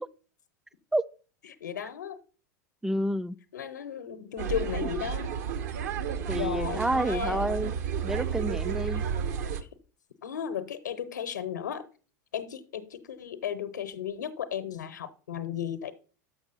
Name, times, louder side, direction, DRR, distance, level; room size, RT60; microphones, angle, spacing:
voice 1, 1.6-2.2 3.5-5.3 6.3-7.5 10.2-11.8 12.3-15.9, left 9 dB, 75° left, 0.8 m, -35 dB
voice 2, 2.8-3.4 6.3-7.7 8.0-9.0, right 1 dB, 5° right, 0.3 m, -29 dB
sound 1, 4.4-9.6, right 7 dB, 65° right, 0.8 m, -32 dB
6.6 x 6.0 x 5.3 m
figure-of-eight pair, 85°, 10 cm